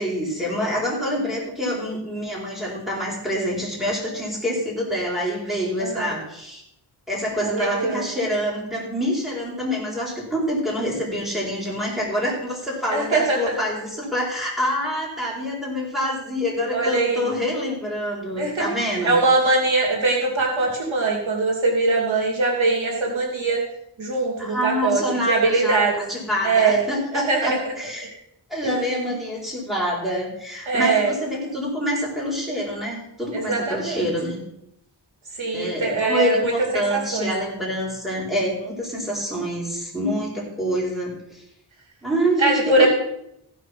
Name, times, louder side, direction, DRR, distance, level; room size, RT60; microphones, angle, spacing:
voice 1, 0.0-6.6 7.1-19.1 24.4-28.1 28.5-34.4 35.5-41.4 42.0-42.9, equal, ahead, -5 dB, 4.5 m, -26 dB
voice 2, 5.8-6.1 7.4-8.0 12.9-13.5 16.7-17.3 18.4-18.7 19.0-23.6 24.0-26.0 26.4-26.9 27.1-27.7 28.6-28.7 30.7-31.1 33.3-34.1 35.4-37.3 42.4-42.9, right 3 dB, 80° right, -2 dB, 2.9 m, -22 dB
15.5 x 5.5 x 6.0 m, 0.80 s
wide cardioid pair, 95°, 46 cm